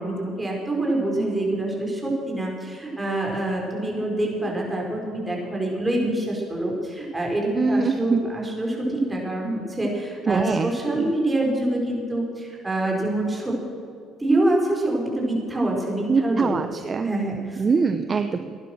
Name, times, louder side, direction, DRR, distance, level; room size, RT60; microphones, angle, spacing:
voice 1, 0.0-13.5 14.2-16.6 17.0-17.6, right 1 dB, 15° right, -1 dB, 4.9 m, -26 dB
voice 2, 7.5-8.2 10.3-11.1 16.1-17.1 17.6-18.6, right 4 dB, 35° right, 8 dB, 0.7 m, -23 dB
16.5 x 11.0 x 6.2 m, 2.4 s
supercardioid pair, 80°, 0 cm